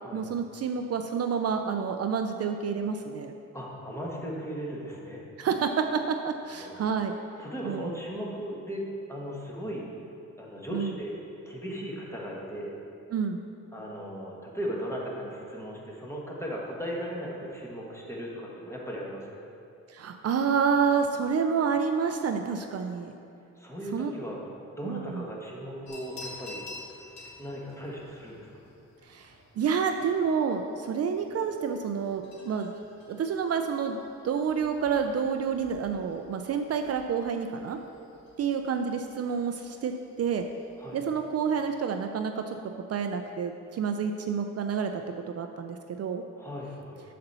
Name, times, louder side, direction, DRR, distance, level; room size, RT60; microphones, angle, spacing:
voice 1, 0.1-3.3 5.4-7.1 7.6-7.9 10.7-10.9 13.1-13.4 19.9-23.1 23.9-24.1 24.9-25.3 29.1-32.7 33.1-37.8 38.4-40.5 40.9-42.6 42.9-45.0 45.3-46.2, right 6 dB, 55° right, 6 dB, 0.4 m, -29 dB
voice 2, 3.5-5.2 6.3-6.7 7.4-9.9 10.4-11.1 11.4-12.7 13.7-19.3 23.6-24.4 24.7-26.6 27.4-28.5 40.8-41.0 46.4-47.0, equal, 10° left, -4 dB, 1.4 m, -37 dB
sound 1, 25.9-42.0, left 2 dB, 65° left, 2.0 m, -51 dB
8.0 x 4.2 x 6.7 m, 2.6 s
wide cardioid pair, 125°, 29 cm